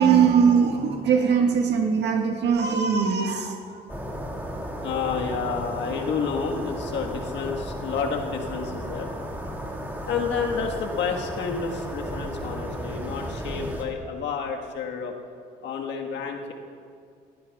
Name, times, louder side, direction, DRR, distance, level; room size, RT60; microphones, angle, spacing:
voice 1, 0.0-3.8, right 6 dB, 60° right, 3 dB, 1.5 m, -21 dB
sound 1, 3.9-13.8, equal, 10° right, 1.9 m, -34 dB
voice 2, 4.8-9.1 10.1-15.1 15.6-16.5, left 5 dB, 65° left, 2 dB, 1.5 m, -30 dB
18.0 x 14.5 x 2.3 m, 2.2 s
supercardioid pair, 75°, 20 cm